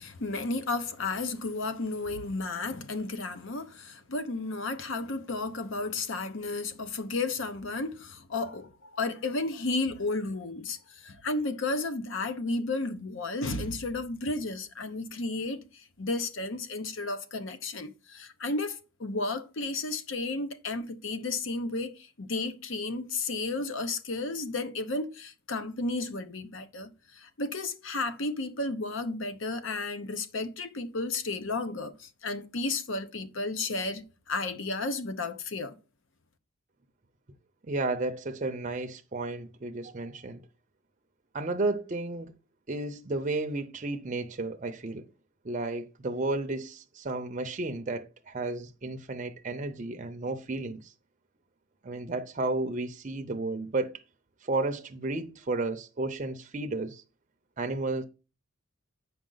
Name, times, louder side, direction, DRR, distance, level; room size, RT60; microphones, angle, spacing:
voice 1, 0.0-35.8, left 3 dB, 60° left, 0.8 m, -33 dB
voice 2, 37.7-40.4 41.3-42.4 42.7-45.1 45.4-50.9 51.8-53.9 54.4-57.0 57.6-58.0, right 2 dB, 35° right, 0.6 m, -32 dB
8.2 x 5.1 x 3.9 m
head